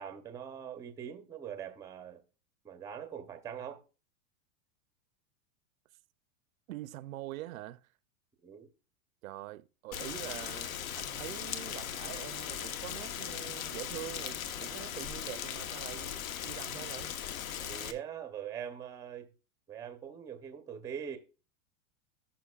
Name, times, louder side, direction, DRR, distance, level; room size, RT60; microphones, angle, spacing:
voice 1, 0.0-2.2 2.6-3.8 8.4-8.7 17.6-19.3 19.7-21.2, right 8 dB, 10° right, 0.5 m, -42 dB
voice 2, 6.7-7.9 9.2-17.2, right 16 dB, 70° right, 0.6 m, -44 dB
Rain, 9.9-17.9, left 9 dB, 70° left, 1.1 m, -39 dB
14.0 x 5.7 x 2.3 m
supercardioid pair, 150°, 43 cm